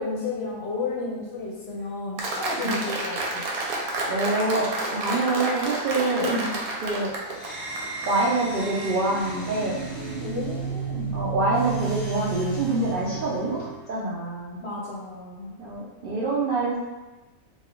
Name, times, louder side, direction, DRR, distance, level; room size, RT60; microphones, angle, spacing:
voice 1, 0.0-3.4 6.2-6.6 10.2-11.3 14.6-15.6, left 3 dB, 55° left, -5 dB, 0.8 m, -32 dB
Applause, 2.2-8.1, right 2 dB, 85° right, 1.1 m, -30 dB
voice 2, 4.1-4.7 4.9-6.3 6.8-7.1 8.1-9.8 11.1-14.6 15.6-16.8, right 2 dB, 60° right, -7 dB, 0.5 m, -26 dB
sound 1, 7.3-13.9, right 5 dB, 20° right, 1.4 m, -33 dB
3.1 x 2.3 x 3.6 m, 1.1 s
omnidirectional pair, 1.5 m